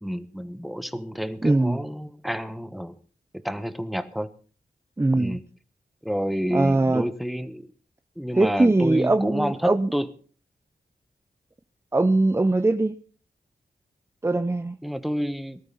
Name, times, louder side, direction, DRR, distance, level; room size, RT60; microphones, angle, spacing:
voice 1, 0.0-3.0 3.3-4.3 5.1-5.4 6.0-7.7 8.2-10.1 14.8-15.6, equal, ahead, 1.1 m, -29 dB
voice 2, 1.4-1.8 5.0-5.4 6.5-7.1 8.4-9.9 11.9-13.0 14.2-14.8, right 2 dB, 15° right, 0.6 m, -21 dB
19.0 x 12.5 x 4.0 m
wide cardioid pair, 85°, 16 cm